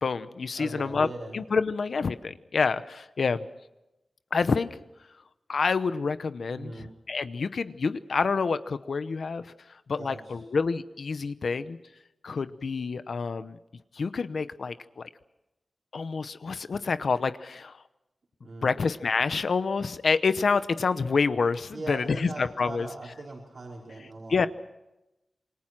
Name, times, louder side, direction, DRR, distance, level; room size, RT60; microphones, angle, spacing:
voice 1, 0.0-1.1 1.3-3.5 4.3-4.8 5.5-11.8 12.2-13.6 13.9-15.1 15.9-17.8 18.6-22.9 24.3-24.5, left 4 dB, 75° left, 12 dB, 0.9 m, -28 dB
voice 2, 0.6-1.3 6.5-6.9 10.0-10.2 18.4-18.8 21.7-24.5, right 2 dB, 60° right, -2 dB, 5.0 m, -40 dB
27.5 x 21.0 x 6.1 m, 0.94 s
wide cardioid pair, 105°, 0 cm